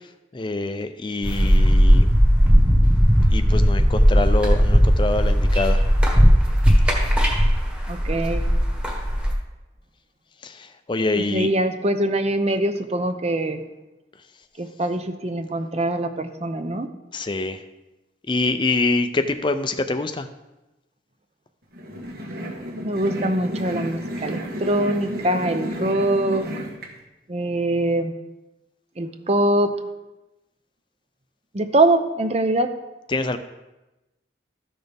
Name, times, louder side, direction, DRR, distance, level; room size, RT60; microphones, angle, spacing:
voice 1, 0.3-2.1 3.3-5.8 10.4-11.5 17.1-17.6 18.3-20.3 33.1-33.4, left 2 dB, 25° left, 9 dB, 0.5 m, -25 dB
sound 1, 1.2-9.3, equal, 5° right, 1.4 m, -17 dB
voice 2, 7.9-8.4 11.2-13.6 14.6-16.9 22.8-26.6 27.3-28.1 29.0-29.8 31.5-32.7, right 1 dB, 35° right, 8 dB, 0.7 m, -23 dB
sound 2, 21.7-26.9, equal, 55° right, 1.6 m, -32 dB
13.5 x 6.3 x 3.5 m, 1.0 s
head